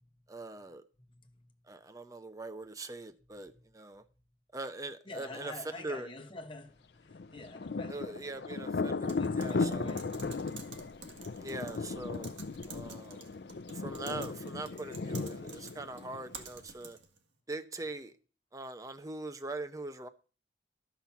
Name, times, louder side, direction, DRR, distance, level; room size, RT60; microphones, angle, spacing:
voice 1, 0.3-0.8 1.7-4.0 4.5-5.5 5.8-6.1 7.9-10.0 11.4-12.3 12.7-13.2 13.7-17.0 17.5-18.1 18.5-20.1, right 2 dB, 20° right, 0.7 m, -42 dB
voice 2, 1.0-1.6 3.5-3.7 5.0-8.2 8.8-10.3, left 2 dB, 25° left, 1.3 m, -48 dB
Thunder, 7.1-16.6, left 4 dB, 60° left, 0.5 m, -36 dB
Typing, 9.1-17.2, right 5 dB, 80° right, 1.7 m, -51 dB
12.5 x 5.9 x 7.0 m
head